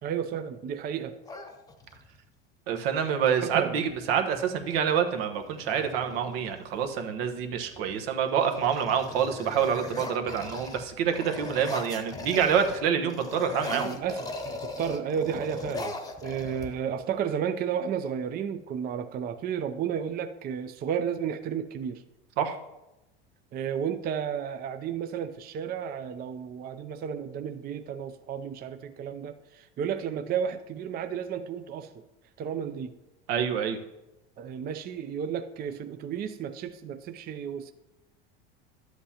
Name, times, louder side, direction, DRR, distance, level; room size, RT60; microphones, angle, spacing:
voice 1, 0.0-1.2 3.4-3.8 10.2-10.3 13.7-22.0 23.5-31.9 32.4-32.9 34.4-37.7, right 8 dB, 30° right, 9 dB, 0.5 m, -32 dB
sound 1, 1.2-2.2 3.9-4.0 4.3-4.8 5.4-6.9 7.5-7.9 8.3-12.8 13.1-17.0, left 2 dB, 10° left, 0.9 m, -39 dB
voice 2, 2.7-13.9 22.4-22.6 33.3-33.8, right 7 dB, 75° right, 6 dB, 1.1 m, -27 dB
11.0 x 8.0 x 2.9 m, 0.95 s
supercardioid pair, 115°, 30 cm